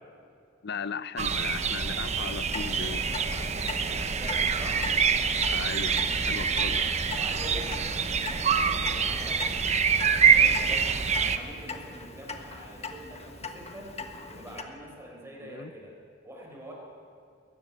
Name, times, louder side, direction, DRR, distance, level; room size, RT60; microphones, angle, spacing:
voice 1, 0.6-3.0 5.5-6.9 15.4-15.7, left 5 dB, 60° left, 14 dB, 0.7 m, -37 dB
sound 1, 1.2-11.4, right 6 dB, 35° right, 0.9 m, -25 dB
Clock, 2.1-14.6, left 3 dB, 35° left, 1.4 m, -41 dB
voice 2, 4.0-4.9 7.1-10.9 11.2-14.0 14.3-16.0 16.2-16.7, equal, 15° right, -1 dB, 4.6 m, -45 dB
21.5 x 13.5 x 9.7 m, 2.4 s
head